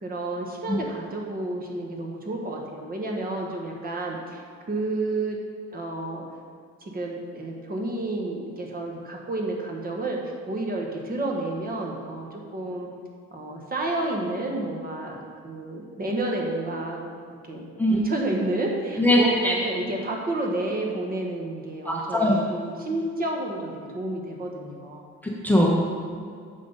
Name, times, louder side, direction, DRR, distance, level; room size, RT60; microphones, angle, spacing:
voice 1, 0.0-5.4 5.7-6.2 6.8-12.9 13.3-17.0 17.5-25.0, right 2 dB, 30° right, 0 dB, 1.2 m, -30 dB
voice 2, 19.0-19.5 21.8-22.4 25.2-25.7, left 1 dB, 5° left, -3 dB, 0.9 m, -21 dB
7.4 x 6.0 x 5.2 m, 2.2 s
cardioid pair, 145°, 30 cm